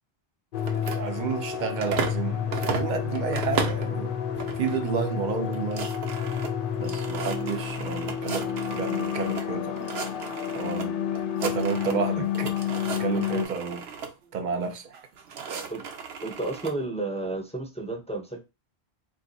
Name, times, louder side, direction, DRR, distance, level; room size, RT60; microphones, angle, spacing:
sound 1, 0.5-13.4, left 9 dB, 65° left, 0.7 m, -30 dB
sound 2, 0.6-2.2 2.5-3.9 4.4-4.8 5.1-5.2 5.5-9.5 9.8-10.9 11.2-12.1 12.3-14.1 14.9-16.7, right 6 dB, 80° right, 0.8 m, -35 dB
voice 1, 0.7-4.1 4.6-5.9 6.8-9.9 10.5-12.3 13.0-13.9 14.3-14.9, right 6 dB, 55° right, 0.6 m, -31 dB
voice 2, 16.2-18.4, right 2 dB, 10° left, 0.4 m, -32 dB
2.5 x 2.4 x 3.9 m
omnidirectional pair, 1.1 m